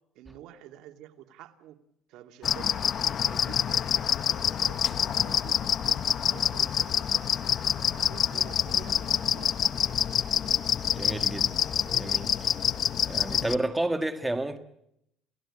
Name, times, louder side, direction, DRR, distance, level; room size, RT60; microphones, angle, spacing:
voice 1, 0.1-1.8 2.1-5.6 5.8-7.3 7.8-10.0, right 12 dB, 70° right, 2.3 m, -49 dB
sound 1, 2.4-13.5, left 9 dB, 45° left, 0.9 m, -27 dB
voice 2, 10.9-12.5 13.1-14.6, right 1 dB, 10° right, 1.6 m, -31 dB
29.0 x 17.0 x 8.7 m
cardioid pair, 125°, 0 cm